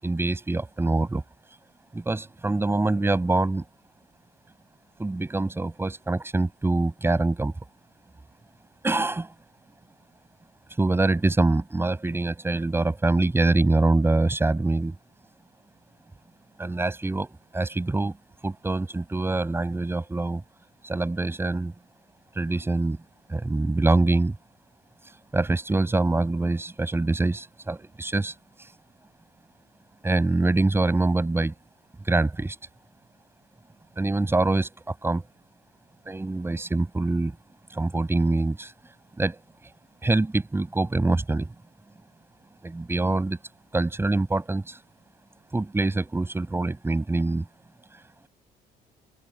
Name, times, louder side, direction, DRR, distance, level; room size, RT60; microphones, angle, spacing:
voice 1, 0.0-1.2 1.9-3.6 5.0-7.5 8.8-9.3 10.8-14.9 16.6-18.1 18.4-20.4 20.8-21.7 22.4-23.0 23.3-24.3 25.3-28.3 30.0-31.5 32.1-32.6 34.0-35.2 36.1-37.3 37.7-38.7 39.2-39.4 40.0-41.5 42.6-43.4 43.7-44.8 45.5-47.4, right 2 dB, 15° right, 7.3 m, -24 dB
open air
cardioid pair, 110°, 17 cm